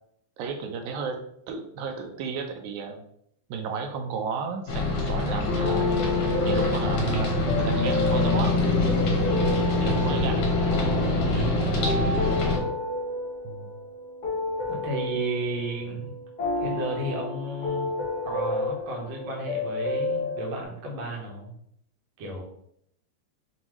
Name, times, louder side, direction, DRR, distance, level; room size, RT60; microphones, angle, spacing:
voice 1, 0.4-1.2 1.5-3.0 3.5-5.9 6.4-8.6 9.8-10.5 13.4-13.7 15.2-15.6, right 5 dB, 80° right, 4 dB, 1.9 m, -33 dB
sound 1, 4.7-12.6, left 2 dB, 65° left, 1.7 m, -25 dB
Bass guitar, 5.5-9.8, left 7 dB, 45° left, 1.0 m, -33 dB
sound 2, 5.6-20.6, left 2 dB, 85° left, 0.8 m, -31 dB
voice 2, 11.3-12.2 14.7-16.1 16.6-17.9 18.2-21.5 22.2-22.4, right 1 dB, 60° right, -1 dB, 1.3 m, -33 dB
5.4 x 2.6 x 3.0 m, 0.71 s
omnidirectional pair, 3.3 m